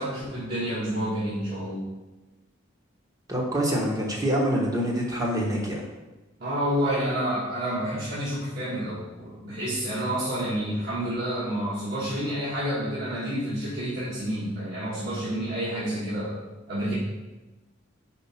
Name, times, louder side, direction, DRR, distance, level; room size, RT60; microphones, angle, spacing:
voice 1, 0.0-1.9 6.4-16.4 16.7-16.9, equal, 50° right, -9 dB, 1.4 m, -29 dB
voice 2, 3.3-5.8, equal, 15° right, -2 dB, 1.0 m, -25 dB
4.5 x 4.4 x 5.6 m, 1.1 s
head